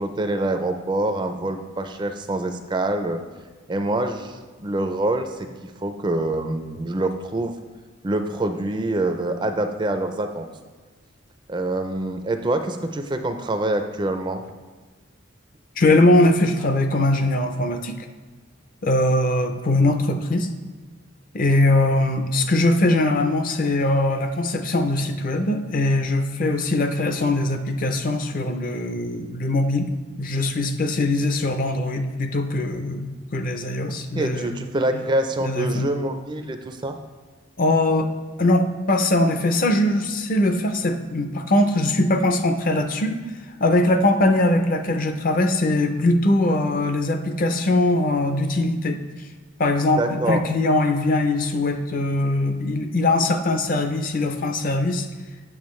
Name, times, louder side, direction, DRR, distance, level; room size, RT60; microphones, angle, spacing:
voice 1, 0.0-3.2 3.7-7.5 8.0-10.5 11.5-14.4 33.9-37.0 50.0-50.4, right 2 dB, 25° right, 7 dB, 0.4 m, -25 dB
voice 2, 15.8-18.1 18.8-20.5 21.3-29.9 30.2-34.6 34.9-35.0 35.4-35.9 37.6-38.1 38.4-43.2 43.6-49.0 49.6-55.1, left 2 dB, 45° left, 7 dB, 0.5 m, -21 dB
8.7 x 6.7 x 3.1 m, 1.4 s
head